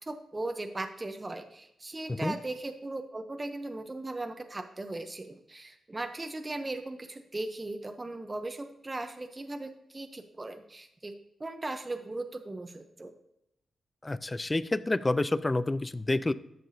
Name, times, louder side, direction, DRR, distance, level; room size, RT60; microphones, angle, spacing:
voice 1, 0.0-13.1, right 2 dB, 20° right, 6 dB, 0.6 m, -38 dB
voice 2, 14.0-16.3, left 2 dB, 20° left, 16 dB, 0.4 m, -28 dB
11.5 x 6.7 x 2.7 m, 0.86 s
cardioid pair, 105°, 0 cm